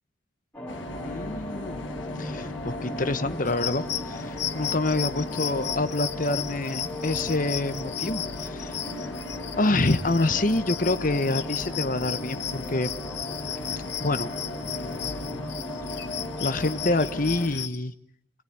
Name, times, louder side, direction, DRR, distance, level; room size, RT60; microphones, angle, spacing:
sound 1, 0.5-17.5, left 1 dB, 10° left, 4.0 m, -37 dB
sound 2, 0.7-17.7, left 2 dB, 80° left, 1.4 m, -40 dB
voice 1, 1.0-1.9 2.2-8.8 9.6-12.9 14.0-14.3 14.7-15.5 16.4-17.9, left 2 dB, 45° left, 12 dB, 1.2 m, -27 dB
sound 3, 3.5-17.8, left 11 dB, 60° left, 2.1 m, -35 dB
29.0 x 21.0 x 9.7 m, 0.70 s
head